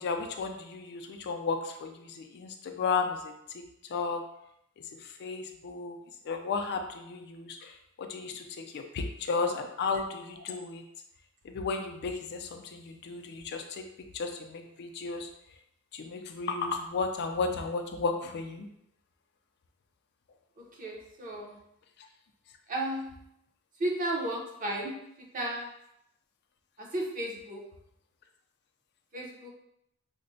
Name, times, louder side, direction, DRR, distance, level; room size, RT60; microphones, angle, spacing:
voice 1, 0.0-3.3 3.9-4.2 5.2-6.0 6.3-7.7 8.0-10.8 11.5-13.8 14.1-15.3 15.9-18.7, left 4 dB, 50° left, 5 dB, 0.3 m, -33 dB
voice 2, 20.8-21.6 22.7-23.1 23.8-24.9 25.3-25.7 26.8-27.6 29.1-29.5, right 1 dB, 35° right, -2 dB, 0.7 m, -33 dB
5.0 x 2.1 x 2.6 m, 0.78 s
head